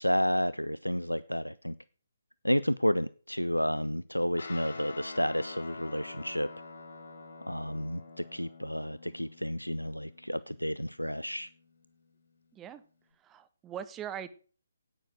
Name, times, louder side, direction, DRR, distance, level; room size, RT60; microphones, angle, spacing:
voice 1, 0.0-1.7 2.4-6.5 7.5-11.5, equal, 90° left, 17 dB, 0.4 m, -31 dB
Guitar, 4.4-13.1, left 3 dB, 65° left, 3.7 m, -48 dB
voice 2, 12.5-12.8 13.2-14.3, right 9 dB, 10° right, 13 dB, 0.7 m, -41 dB
10.0 x 9.3 x 6.3 m, 0.41 s
figure-of-eight pair, 140°, 0 cm